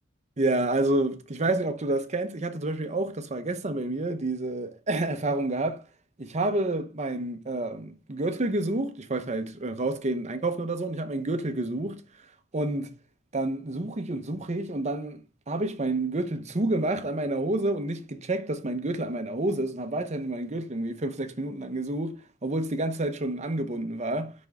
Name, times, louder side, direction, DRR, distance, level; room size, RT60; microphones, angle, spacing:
voice 1, 0.4-5.8 6.2-12.0 12.5-12.9 13.3-15.2 15.5-24.3, right 2 dB, 35° right, 0.8 m, -29 dB
5.9 x 5.2 x 3.4 m
head